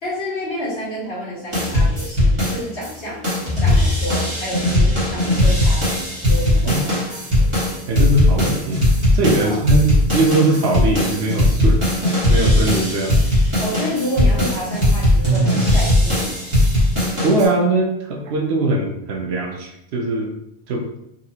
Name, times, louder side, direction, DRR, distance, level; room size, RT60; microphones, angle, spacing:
voice 1, 0.0-3.2 3.5-5.9 6.3-7.5 9.4-9.6 13.6-16.4, equal, 65° left, -7 dB, 1.6 m, -29 dB
sound 1, 1.5-2.9 3.2-17.4, left 1 dB, 30° right, 1.3 m, -18 dB
voice 2, 7.9-8.8 9.1-11.8 12.3-13.1 17.2-20.3 20.7-20.9, right 2 dB, 90° right, 1 dB, 1.0 m, -20 dB
4.1 x 2.4 x 2.8 m, 0.79 s
omnidirectional pair, 1.1 m